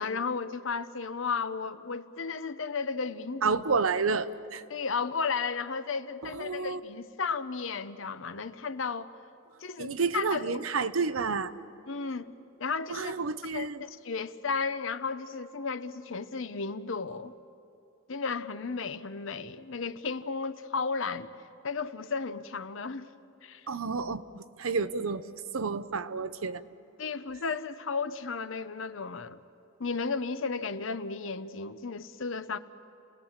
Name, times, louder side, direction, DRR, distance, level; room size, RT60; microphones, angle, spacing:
voice 1, 0.0-3.6 4.7-9.2 9.6-10.5 11.9-12.3 12.6-13.1 13.5-17.3 18.1-21.3 21.6-23.1 23.4-23.7 27.0-29.4 29.8-32.6, left 5 dB, 70° left, 11 dB, 0.8 m, -34 dB
voice 2, 3.4-4.6 6.2-6.8 9.8-11.5 12.9-13.8 23.7-25.3 25.5-26.6, right 4 dB, 90° right, 13 dB, 0.8 m, -30 dB
30.0 x 18.5 x 7.3 m, 2.9 s
head